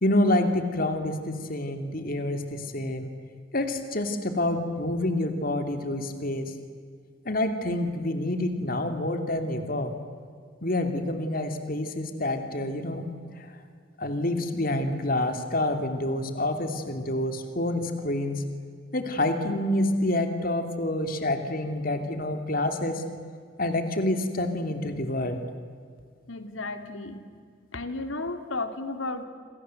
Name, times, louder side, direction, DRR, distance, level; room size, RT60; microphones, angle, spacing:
voice 1, 0.0-3.1 3.5-6.5 7.2-9.9 10.6-13.1 13.4-13.5 14.0-18.5 18.9-23.0 23.6-25.4, left 1 dB, 45° left, 7 dB, 2.8 m, -27 dB
voice 2, 26.3-27.2 27.7-29.3, left 2 dB, 90° left, 8 dB, 2.8 m, -33 dB
27.0 x 27.0 x 7.9 m, 2.1 s
head